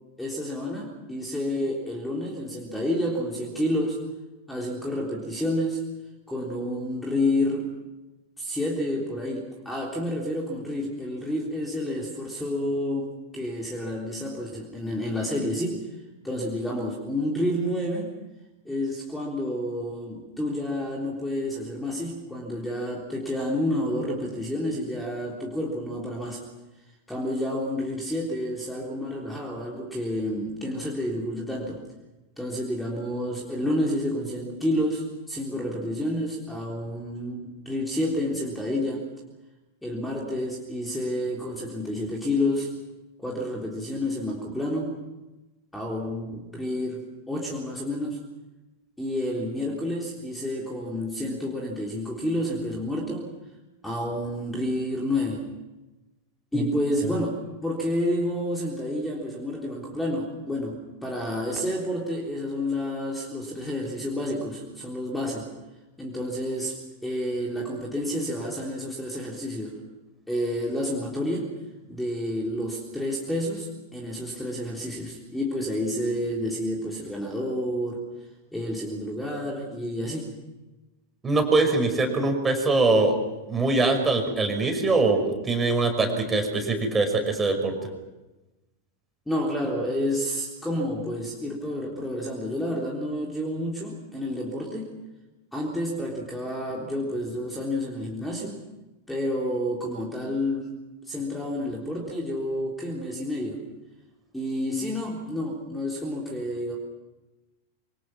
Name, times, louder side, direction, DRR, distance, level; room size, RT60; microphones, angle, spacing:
voice 1, 0.2-4.0 4.5-5.8 6.3-7.7 8.4-15.9 16.2-18.2 18.7-26.4 27.1-31.8 32.4-39.1 39.8-42.7 43.2-45.0 45.7-48.2 49.0-53.3 53.8-55.4 56.5-65.5 66.0-69.8 70.3-71.5 71.9-78.1 78.5-80.3 89.3-94.9 95.5-98.6 99.1-100.7 101.0-103.6 104.3-106.8, left 1 dB, 5° left, -1 dB, 3.6 m, -29 dB
voice 2, 81.2-83.2 83.5-87.7, right 3 dB, 15° right, 5 dB, 5.6 m, -23 dB
26.5 x 24.5 x 6.0 m, 1.1 s
figure-of-eight pair, 90°, 0 cm